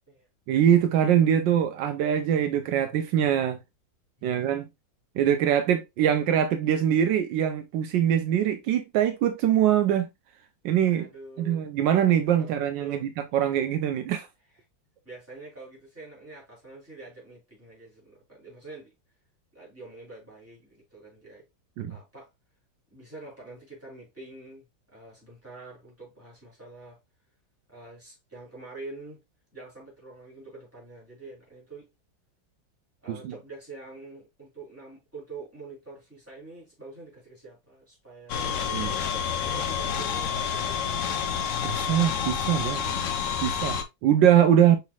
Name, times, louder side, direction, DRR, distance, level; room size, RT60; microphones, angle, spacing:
voice 1, 0.5-3.6 4.2-4.7 5.2-10.1 10.6-11.1 11.4-14.3 21.8-22.0 33.1-33.3 38.7-38.9 41.6-42.9 43.4-44.8, right 10 dB, 80° right, 1.3 m, -23 dB
voice 2, 10.9-11.7 12.4-13.0 15.0-18.9 19.5-21.4 21.9-22.3 22.9-27.0 27.7-29.2 29.5-31.9 33.0-38.6 38.9-41.3, right 3 dB, 5° right, 3.0 m, -46 dB
sound 1, 38.3-43.8, left 7 dB, 65° left, 0.8 m, -29 dB
5.7 x 4.1 x 2.3 m
omnidirectional pair, 2.0 m